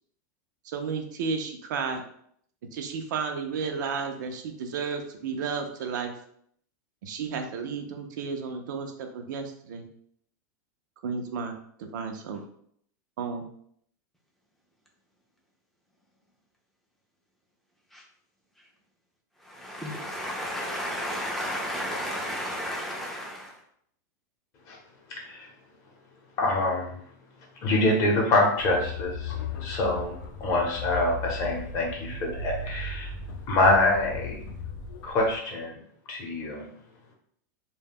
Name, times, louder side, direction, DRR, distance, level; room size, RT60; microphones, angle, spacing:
voice 1, 0.6-2.0 2.7-6.1 7.0-9.9 11.0-12.4 13.2-13.4, right 5 dB, 75° right, 5 dB, 0.4 m, -33 dB
voice 2, 19.5-23.5, equal, ahead, -2 dB, 0.4 m, -32 dB
voice 3, 25.1-25.5 26.4-26.9 27.6-33.1 33.5-34.4 35.0-35.8 36.1-36.7, left 2 dB, 35° left, -1 dB, 0.7 m, -25 dB
sound 1, 28.6-35.4, left 3 dB, 80° left, 0.4 m, -37 dB
2.2 x 2.0 x 3.5 m, 0.66 s
supercardioid pair, 155°, 10 cm